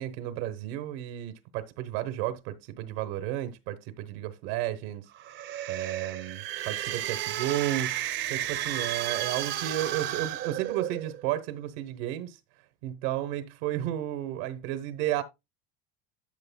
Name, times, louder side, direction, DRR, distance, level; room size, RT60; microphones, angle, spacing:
voice 1, 0.0-5.0 5.7-7.9 8.3-12.4 12.8-15.2, right 13 dB, 75° right, 1.1 m, -33 dB
sound 1, 5.1-11.2, right 12 dB, 40° right, 0.8 m, -33 dB
12.0 x 6.6 x 2.2 m
cardioid pair, 170°, 30 cm